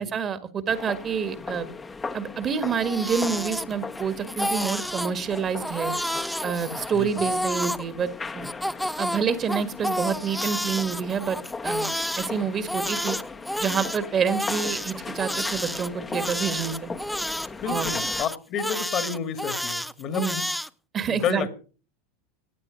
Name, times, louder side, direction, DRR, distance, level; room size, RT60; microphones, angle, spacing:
voice 1, 0.0-1.7 2.1-5.9 6.4-8.5 9.0-11.4 11.6-11.9 12.2-13.2 13.6-16.9 17.6-17.9 20.1-20.3 20.9-21.5, right 6 dB, 30° right, 1.6 m, -27 dB
sound 1, 0.7-18.2, left 4 dB, 20° left, 1.0 m, -38 dB
Crying sobbing, 2.5-4.0 4.3-5.1 5.6-7.8 8.4-12.3 12.7-20.7, equal, ahead, 0.6 m, -30 dB
voice 2, 17.6-20.5 21.1-21.6, left 7 dB, 40° left, 2.0 m, -30 dB
16.5 x 9.7 x 5.1 m
figure-of-eight pair, 85°, 0 cm